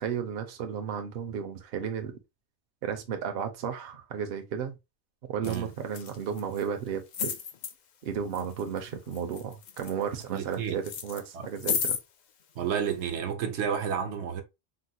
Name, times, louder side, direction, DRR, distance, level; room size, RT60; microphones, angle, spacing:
voice 1, 0.0-2.1 2.8-4.7 5.3-7.3 8.0-12.0, right 7 dB, 70° right, 0.8 m, -33 dB
sound 1, 5.4-5.6 5.9-6.6 7.1-7.7 8.3-8.8 9.1-10.5 10.8-12.0 12.8-12.9, left 7 dB, 55° left, 0.5 m, -33 dB
voice 2, 10.3-10.8 11.3-11.8 12.6-14.4, right 7 dB, 85° right, 1.0 m, -31 dB
3.8 x 2.0 x 2.7 m
omnidirectional pair, 1.1 m